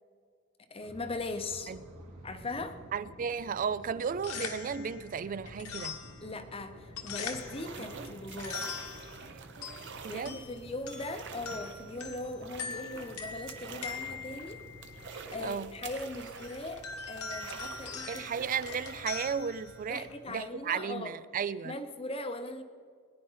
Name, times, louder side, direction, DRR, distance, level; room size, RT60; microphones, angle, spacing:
voice 1, 0.7-1.7 2.2-2.8 6.2-8.6 10.1-14.6 15.3-18.3 19.9-21.1 21.6-22.6, left 2 dB, 25° left, 0.7 m, -39 dB
sound 1, 0.8-15.1, right 1 dB, 80° right, 2.4 m, -52 dB
voice 2, 2.9-6.0 7.8-8.1 9.2-10.4 15.4-15.7 18.1-21.8, right 6 dB, 40° right, 0.3 m, -35 dB
sound 2, 4.0-20.3, left 5 dB, 80° left, 1.4 m, -43 dB
sound 3, 6.7-20.5, right 5 dB, 55° right, 0.9 m, -48 dB
18.5 x 10.5 x 3.9 m
head